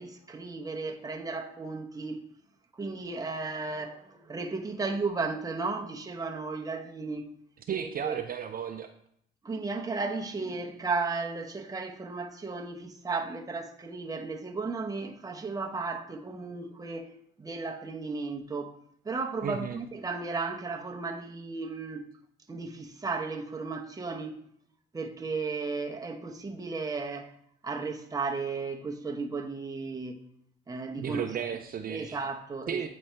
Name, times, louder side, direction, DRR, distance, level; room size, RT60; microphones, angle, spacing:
voice 1, 0.0-2.2 2.7-7.3 7.7-8.2 9.4-17.1 17.4-18.8 19.0-22.1 22.5-24.4 24.9-27.3 27.6-30.2 30.7-31.5 31.9-32.9, right 4 dB, 20° right, 0.8 m, -34 dB
voice 2, 7.7-8.9 19.4-19.8 31.0-32.2 32.7-32.9, right 8 dB, 45° right, 0.5 m, -34 dB
8.6 x 4.2 x 3.3 m
cardioid pair, 90°, 20 cm